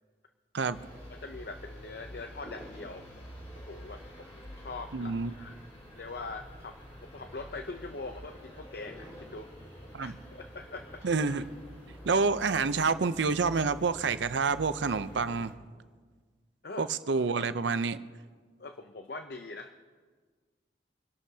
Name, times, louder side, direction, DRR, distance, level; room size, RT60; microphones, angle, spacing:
sound 1, 0.7-15.5, equal, 30° left, 2.9 m, -48 dB
voice 1, 1.1-3.0 3.6-4.0 4.3-5.5 5.9-9.7 10.0-11.0 16.6-16.9 18.6-19.7, left 3 dB, 55° left, 7 dB, 0.6 m, -42 dB
voice 2, 4.9-5.3 9.9-10.1 11.0-11.4 12.0-15.5 16.8-18.0, right 4 dB, 75° right, 13 dB, 0.6 m, -28 dB
25.5 x 11.5 x 2.8 m, 1.5 s
head